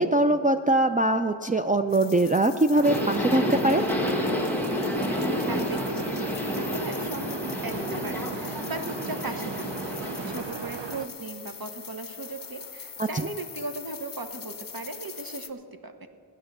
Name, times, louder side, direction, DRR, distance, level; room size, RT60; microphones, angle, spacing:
voice 1, 0.0-3.8 13.0-13.1, right 2 dB, 20° right, 5 dB, 0.5 m, -22 dB
sound 1, 1.9-15.5, left 6 dB, 45° left, 0.8 m, -42 dB
sound 2, 2.7-11.1, right 7 dB, 65° right, 0.7 m, -37 dB
Subway metro underground, 2.8-10.4, left 1 dB, 5° left, 1.7 m, -30 dB
voice 2, 5.5-16.1, right 3 dB, 50° right, 7 dB, 1.2 m, -38 dB
15.5 x 9.8 x 6.7 m, 2.3 s
wide cardioid pair, 55°, 47 cm